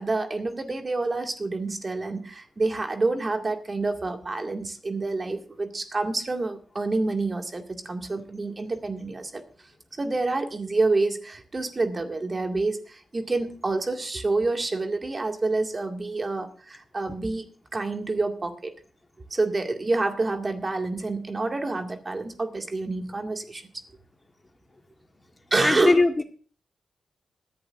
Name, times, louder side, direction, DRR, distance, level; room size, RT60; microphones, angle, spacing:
voice 1, 0.0-9.4 10.0-17.5 17.7-18.7 19.3-23.7 25.5-26.0, right 3 dB, 40° right, 4 dB, 2.1 m, -28 dB
voice 2, 25.6-26.2, left 2 dB, 35° left, 6 dB, 1.4 m, -20 dB
20.5 x 11.0 x 2.6 m, 0.40 s
supercardioid pair, 45°, 0 cm